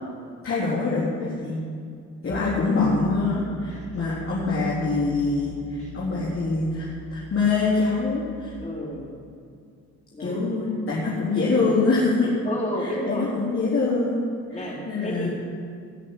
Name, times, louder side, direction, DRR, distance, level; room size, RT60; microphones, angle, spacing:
voice 1, 0.4-1.6 2.2-8.5 10.2-12.3 12.8-14.2 14.5-15.3, left 3 dB, 45° left, -8 dB, 4.0 m, -24 dB
Piano, 2.3-8.6, right 4 dB, 60° right, 3.7 m, -43 dB
voice 2, 8.6-9.1 10.1-10.4 12.4-13.3 14.5-15.3, left 1 dB, 25° left, -3 dB, 4.5 m, -31 dB
18.5 x 6.5 x 9.9 m, 2.3 s
cardioid pair, 90°, 30 cm